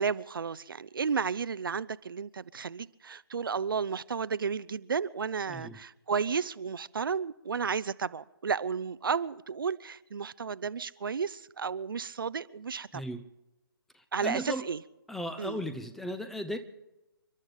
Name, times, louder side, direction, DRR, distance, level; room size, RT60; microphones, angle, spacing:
voice 1, 0.0-13.0 14.1-14.8 15.4-15.6, right 6 dB, 60° right, 0.6 m, -33 dB
voice 2, 12.9-13.2 13.9-14.6 15.1-16.6, equal, ahead, 0.5 m, -36 dB
29.5 x 12.0 x 3.8 m
figure-of-eight pair, 140°, 13 cm